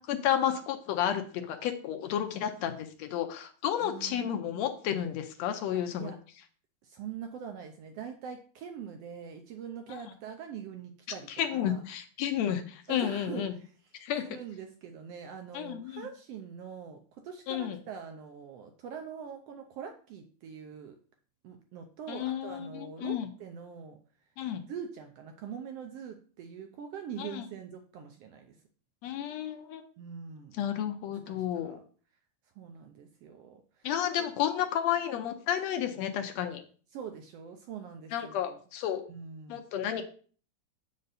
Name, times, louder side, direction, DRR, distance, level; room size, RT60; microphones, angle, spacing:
voice 1, 0.1-6.1 11.4-13.5 14.0-14.2 15.5-16.1 17.5-17.8 22.1-23.3 24.4-24.6 27.2-27.4 29.0-29.8 30.5-31.8 33.8-36.6 38.1-39.0 39.5-40.0, left 10 dB, 75° left, 7 dB, 1.7 m, -31 dB
voice 2, 3.8-4.7 5.7-6.2 6.8-11.8 12.9-13.7 14.2-21.0 21.4-24.0 24.7-28.5 30.0-30.6 31.1-31.8 32.6-33.9 34.2-34.3 36.9-38.6 39.1-39.6, right 7 dB, 75° right, 5 dB, 1.4 m, -43 dB
7.7 x 5.3 x 4.0 m, 0.43 s
omnidirectional pair, 3.3 m